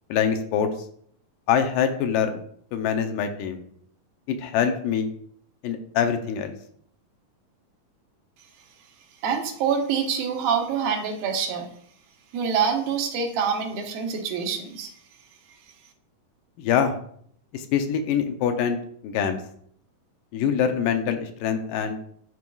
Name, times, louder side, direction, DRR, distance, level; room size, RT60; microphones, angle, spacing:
voice 1, 0.1-0.7 1.5-2.4 2.7-3.6 4.3-5.1 5.6-6.5 16.6-17.0 17.5-18.8 19.0-19.4 20.3-22.0, left 8 dB, 80° left, 6 dB, 2.2 m, -24 dB
voice 2, 9.2-11.7 12.3-14.9, right 6 dB, 85° right, 2 dB, 2.7 m, -26 dB
11.0 x 4.6 x 2.3 m, 0.63 s
omnidirectional pair, 3.9 m